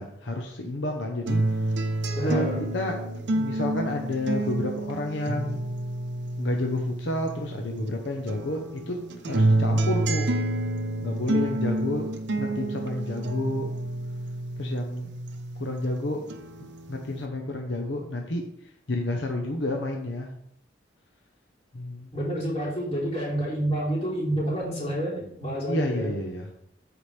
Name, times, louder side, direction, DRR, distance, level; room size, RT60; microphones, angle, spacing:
voice 1, 0.0-1.8 2.2-2.4 2.7-3.0 3.3-5.6 6.4-10.3 11.0-13.7 14.6-15.1 15.6-16.3 16.9-20.3 21.7-22.1 25.6-26.5, left 1 dB, 70° left, 2 dB, 0.9 m, -30 dB
sound 1, 1.3-7.9 8.3-15.9 16.3-17.3, right 1 dB, 70° right, 0.8 m, -29 dB
voice 2, 2.1-2.6 22.1-26.1, right 1 dB, 30° left, -6 dB, 3.5 m, -28 dB
14.0 x 4.9 x 3.4 m, 0.73 s
head